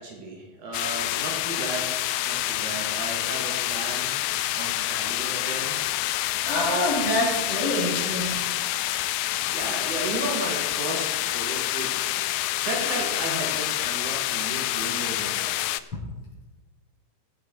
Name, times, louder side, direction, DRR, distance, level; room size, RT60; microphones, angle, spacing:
voice 1, 0.0-2.0 2.3-4.1 4.6-5.8 8.2-8.4 9.4-11.9 12.6-15.8, right 2 dB, 70° right, -1 dB, 3.7 m, -34 dB
sound 1, 0.7-15.8, left 15 dB, 80° left, 1.7 m, -27 dB
voice 2, 6.4-8.4, left 1 dB, 55° left, -4 dB, 5.1 m, -26 dB
19.5 x 8.2 x 4.7 m, 1.2 s
omnidirectional pair, 3.6 m